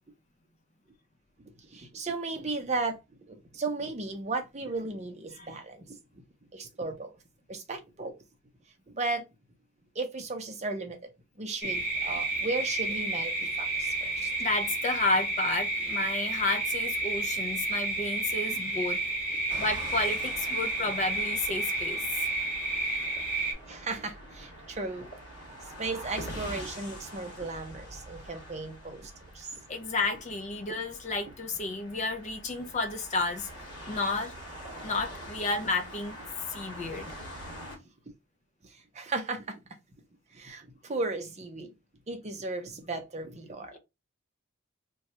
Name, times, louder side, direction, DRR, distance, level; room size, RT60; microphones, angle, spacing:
voice 1, 1.6-3.0 3.3-6.0 6.5-7.1 7.5-8.1 8.9-9.2 9.9-11.0 11.4-14.3 23.7-25.1 25.8-29.6 38.6-39.6 40.3-41.7 42.1-43.7, right 3 dB, 30° right, 0.6 m, -35 dB
sound 1, 11.6-23.5, right 2 dB, 5° right, 1.0 m, -31 dB
voice 2, 14.4-19.0 19.6-22.0 29.7-33.5 33.9-34.3 34.8-36.2 36.5-37.1 43.7-43.8, left 3 dB, 35° left, 0.4 m, -31 dB
sound 2, 19.5-37.8, equal, 55° left, 1.4 m, -45 dB
2.8 x 2.3 x 4.1 m
head